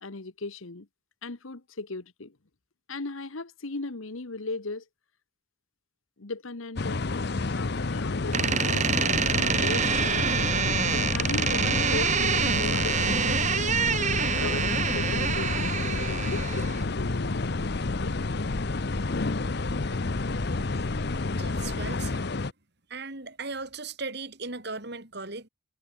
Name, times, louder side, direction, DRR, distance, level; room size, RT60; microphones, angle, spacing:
voice 1, 0.0-0.9 1.2-2.3 2.9-4.8 6.2-7.0 7.5-10.4 10.9-13.4 14.3-18.2, left 3 dB, 75° left, 1.2 m, -37 dB
sound 1, 6.8-22.5, left 3 dB, 50° left, 0.7 m, -29 dB
Door, 8.3-16.8, right 6 dB, 35° right, 1.6 m, -27 dB
sound 2, 9.1-21.8, equal, 15° right, 3.6 m, -42 dB
voice 2, 21.3-22.3 22.9-25.5, right 3 dB, 50° right, 3.2 m, -37 dB
head